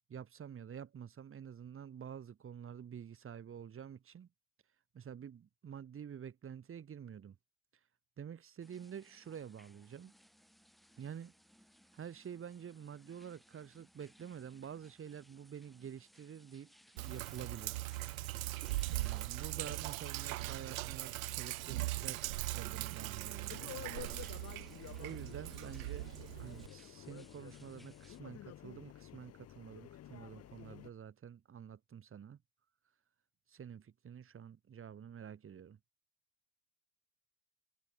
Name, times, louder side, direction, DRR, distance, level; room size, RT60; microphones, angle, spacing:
voice 1, 0.1-4.3 4.9-7.4 8.2-10.1 11.0-11.3 11.9-16.7 17.0-17.8 18.9-23.9 25.0-26.1 26.4-32.4 33.5-35.8, right 8 dB, 30° right, 3.1 m, -49 dB
sound 1, 8.6-28.2, equal, ahead, 3.9 m, -65 dB
Sink (filling or washing), 17.0-26.7, right 18 dB, 90° right, 0.8 m, -40 dB
sound 2, 23.5-30.9, left 12 dB, 40° left, 1.3 m, -51 dB
supercardioid pair, 95°, 40 cm